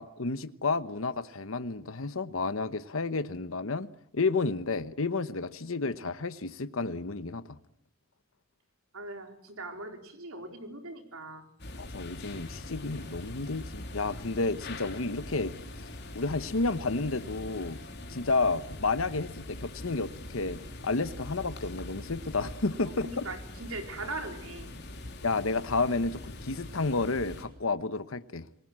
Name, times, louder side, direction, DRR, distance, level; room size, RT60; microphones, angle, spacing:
voice 1, 0.0-3.9 4.1-7.6 11.8-15.5 16.1-17.8 18.1-23.3 25.2-28.5, left 3 dB, 75° left, 1.0 m, -31 dB
voice 2, 8.9-11.4 23.0-24.7, right 2 dB, 90° right, 4.2 m, -40 dB
sound 1, 11.6-27.4, left 1 dB, 50° left, 3.7 m, -43 dB
29.0 x 19.5 x 7.6 m
head